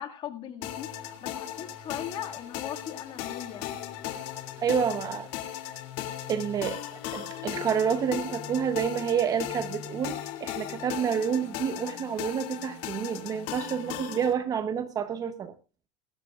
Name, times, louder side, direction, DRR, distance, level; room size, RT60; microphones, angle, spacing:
voice 1, 0.0-3.7, left 9 dB, 30° left, 2.0 m, -39 dB
sound 1, 0.6-14.3, left 11 dB, 50° left, 2.4 m, -37 dB
voice 2, 4.6-5.3 6.3-6.8 7.1-15.5, right 7 dB, 20° right, 0.8 m, -29 dB
23.5 x 12.0 x 2.4 m
supercardioid pair, 170°, 16 cm